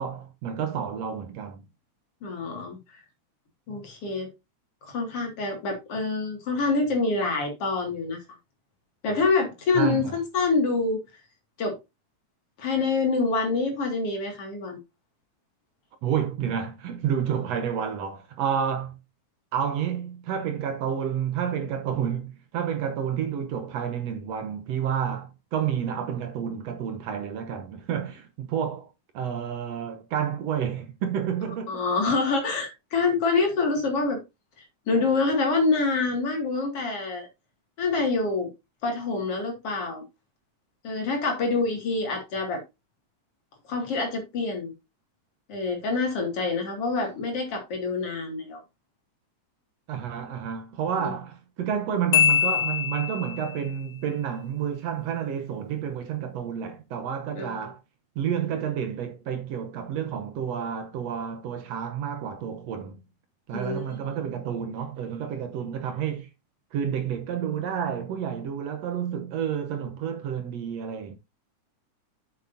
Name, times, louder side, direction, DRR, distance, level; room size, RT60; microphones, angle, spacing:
voice 1, 0.0-1.6 9.7-10.2 16.0-19.0 19.5-31.7 49.9-57.8 58.2-63.0 63.5-66.3 66.7-71.1, right 8 dB, 70° right, 1.9 m, -30 dB
voice 2, 2.2-2.8 3.7-4.3 4.8-8.2 9.0-11.0 11.6-11.8 12.6-14.8 31.7-34.2 34.9-37.3 37.8-38.5 38.8-40.0 40.8-42.6 43.6-44.7 45.5-48.6 51.0-51.1 57.4-57.6 63.5-64.0, left 3 dB, 55° left, 3.0 m, -26 dB
Marimba xylophone, 52.1-53.6, left 10 dB, 90° left, 2.2 m, -23 dB
7.9 x 7.7 x 2.7 m
omnidirectional pair, 3.4 m